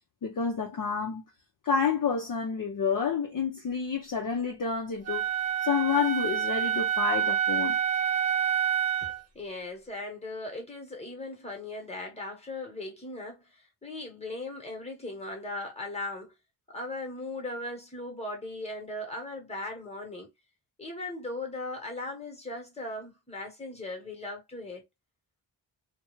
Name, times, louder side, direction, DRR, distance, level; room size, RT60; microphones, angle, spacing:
voice 1, 0.2-1.2 1.6-5.3 5.6-7.8, left 6 dB, 45° left, 0.5 m, -29 dB
Wind instrument woodwind instrument, 5.1-9.2, right 9 dB, 35° right, 0.6 m, -27 dB
voice 2, 9.0-16.3 16.7-20.3 20.8-24.8, left 2 dB, 15° left, 1.0 m, -38 dB
2.3 x 2.2 x 3.0 m
wide cardioid pair, 95°, 47 cm